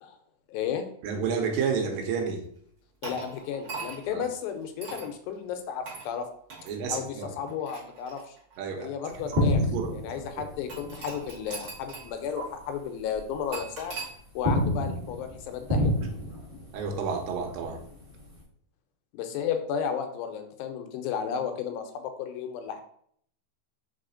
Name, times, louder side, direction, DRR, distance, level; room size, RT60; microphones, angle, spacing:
voice 1, 0.5-0.9 3.0-6.3 6.9-8.4 8.8-9.6 9.9-13.9 14.4-16.0 19.1-22.8, left 7 dB, 85° left, 6 dB, 2.4 m, -33 dB
voice 2, 1.0-2.4 4.1-4.2 6.7-7.3 8.6-9.4 9.7-10.0 10.3-10.4 16.0-16.1 16.7-17.8, right 5 dB, 85° right, 3 dB, 2.4 m, -30 dB
sound 1, 3.0-4.2 4.8-5.1 5.9-6.1 6.5-6.7 7.4-8.6 9.3-9.4 10.7-12.1 12.4-12.5 13.5-14.1, right 4 dB, 60° right, 1.2 m, -40 dB
sound 2, 9.1-12.1 12.4-12.6 13.1-13.9 14.2-18.4, left 1 dB, 20° right, 0.9 m, -30 dB
4.8 x 4.0 x 2.5 m, 0.64 s
omnidirectional pair, 4.1 m